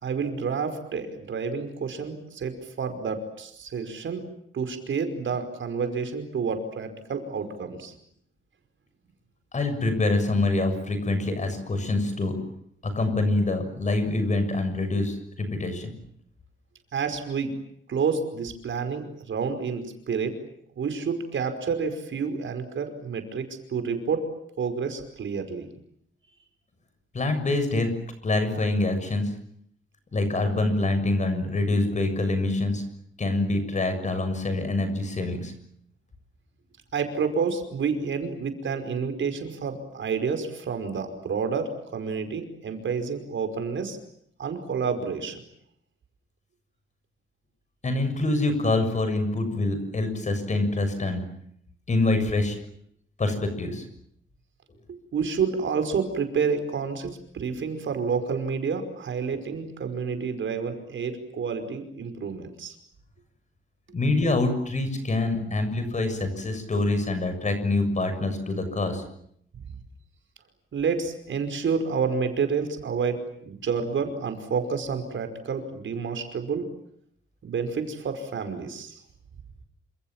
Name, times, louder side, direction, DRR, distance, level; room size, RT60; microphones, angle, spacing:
voice 1, 0.0-4.2 4.5-7.9 16.9-17.6 17.9-20.3 20.8-24.3 24.6-25.7 36.9-44.0 44.4-45.4 54.9-62.8 69.7-69.8 70.7-76.7 77.4-79.0, right 5 dB, 65° right, 7 dB, 5.3 m, -29 dB
voice 2, 9.5-12.4 12.8-15.9 27.1-27.9 28.2-29.3 30.1-32.8 33.2-35.5 47.8-51.2 51.9-52.6 53.2-53.9 63.9-69.0, left 2 dB, 35° left, 9 dB, 7.0 m, -25 dB
28.5 x 27.0 x 7.5 m, 0.69 s
wide cardioid pair, 160°, 21 cm